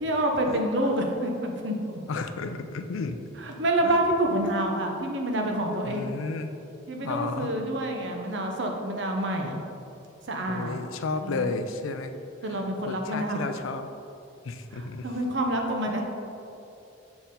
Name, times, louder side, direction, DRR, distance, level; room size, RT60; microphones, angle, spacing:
voice 1, 0.0-1.7 3.4-6.1 6.9-9.6 10.3-10.8 11.2-11.6 12.4-13.4 14.7-16.0, right 1 dB, 60° right, 2 dB, 0.8 m, -27 dB
voice 2, 2.1-3.2 3.8-4.0 5.8-6.5 7.0-7.6 10.5-12.1 12.8-13.9 14.4-15.2, left 3 dB, 85° left, 9 dB, 0.4 m, -32 dB
6.9 x 4.4 x 3.8 m, 2.7 s
head